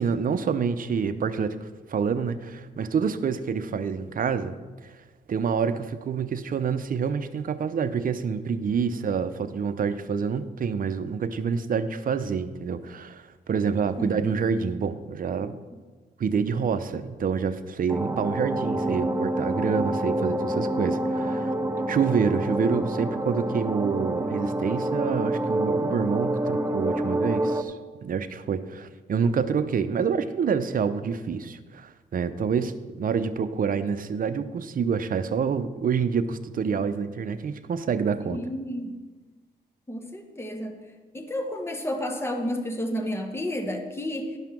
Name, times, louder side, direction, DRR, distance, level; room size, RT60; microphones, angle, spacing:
voice 1, 0.0-4.6 4.8-4.9 5.3-15.6 16.2-21.5 21.9-27.8 28.0-38.4, right 6 dB, 50° right, 10 dB, 0.7 m, -27 dB
sound 1, 17.9-27.6, right 1 dB, 15° right, 0.6 m, -27 dB
voice 2, 38.3-39.0 39.9-40.8 41.1-44.4, equal, 15° left, 3 dB, 1.2 m, -31 dB
11.5 x 5.6 x 6.0 m, 1.3 s
cardioid pair, 95°, 18 cm